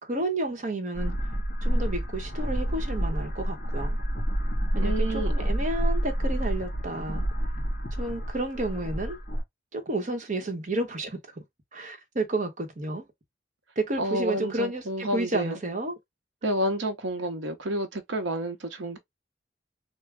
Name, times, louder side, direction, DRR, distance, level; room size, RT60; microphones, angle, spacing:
voice 1, 0.0-1.1 1.6-4.0 4.7-7.2 8.0-9.2 9.7-11.2 11.7-13.0 13.8-16.0, right 2 dB, 40° right, 1.0 m, -31 dB
sound 1, 1.0-9.4, equal, 50° left, 1.9 m, -28 dB
voice 2, 4.7-5.3 14.0-15.6 16.4-19.0, right 1 dB, 85° right, 0.9 m, -30 dB
3.6 x 2.2 x 3.3 m
head